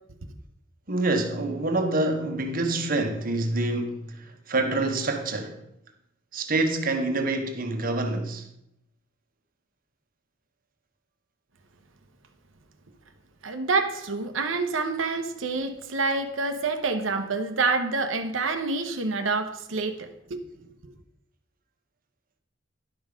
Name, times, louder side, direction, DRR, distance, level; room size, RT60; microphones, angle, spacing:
voice 1, 0.9-5.6 6.3-8.5, right 2 dB, 45° right, 1.2 m, -26 dB
voice 2, 13.4-20.4, right 3 dB, 90° right, 0.9 m, -27 dB
11.0 x 5.5 x 5.0 m
head